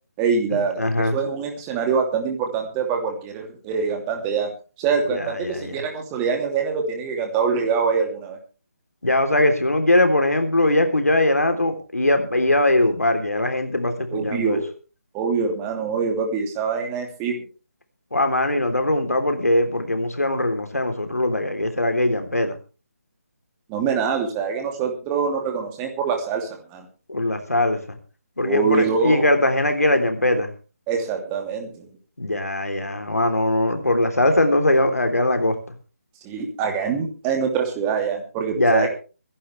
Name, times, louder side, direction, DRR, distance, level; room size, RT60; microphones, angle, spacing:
voice 1, 0.2-4.5 4.8-8.4 14.1-14.7 15.1-17.5 23.7-26.9 28.4-29.3 30.9-31.9 36.2-38.9, right 6 dB, 15° right, 3 dB, 2.8 m, -24 dB
voice 2, 0.8-1.2 5.1-5.7 9.0-14.6 18.1-22.6 27.1-28.0 28.4-30.5 32.2-35.6 38.6-38.9, left 1 dB, 75° left, 6 dB, 3.5 m, -21 dB
24.0 x 11.5 x 3.3 m, 0.35 s
figure-of-eight pair, 150°, 8 cm